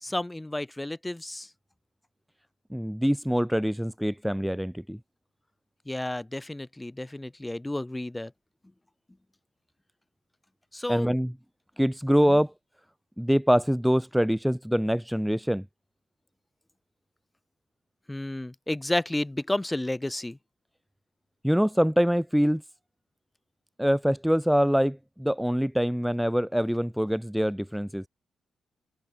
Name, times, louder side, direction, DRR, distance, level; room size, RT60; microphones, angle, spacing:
voice 1, 0.0-1.5 5.9-8.3 10.7-11.1 12.2-12.4 18.1-20.4, left 1 dB, 15° left, 0.9 m, -31 dB
voice 2, 2.7-5.0 10.9-11.3 11.8-12.5 13.2-15.6 21.4-22.6 23.8-28.0, equal, 5° right, 0.4 m, -24 dB
supercardioid pair, 45°, 0 cm